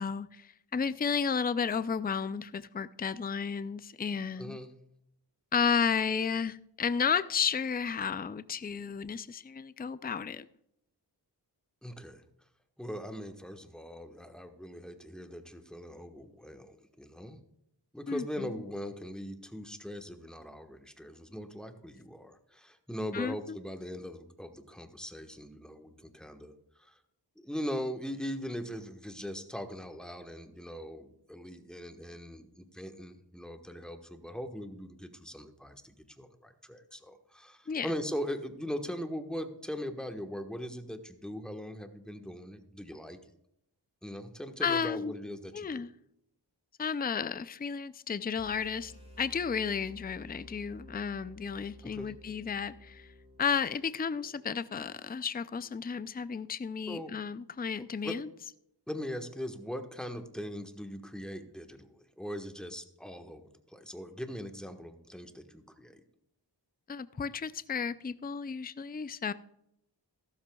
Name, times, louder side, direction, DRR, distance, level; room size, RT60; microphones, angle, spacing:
voice 1, 0.0-4.6 5.5-10.5 18.1-18.6 23.1-23.6 37.7-37.9 44.6-45.2 45.5-45.9 46.8-48.9 49.2-53.1 53.4-58.3 66.9-69.3, left 6 dB, 20° left, 14 dB, 0.4 m, -33 dB
voice 2, 4.4-4.7 11.8-12.2 12.8-17.4 17.9-27.0 27.4-43.2 44.0-45.9 51.8-52.1 56.9-57.2 58.0-58.2 58.9-66.0, equal, ahead, 6 dB, 1.3 m, -40 dB
sound 1, 48.3-54.5, left 1 dB, 15° right, 5.1 m, -53 dB
14.0 x 12.5 x 2.3 m, 0.78 s
wide cardioid pair, 40°, 43 cm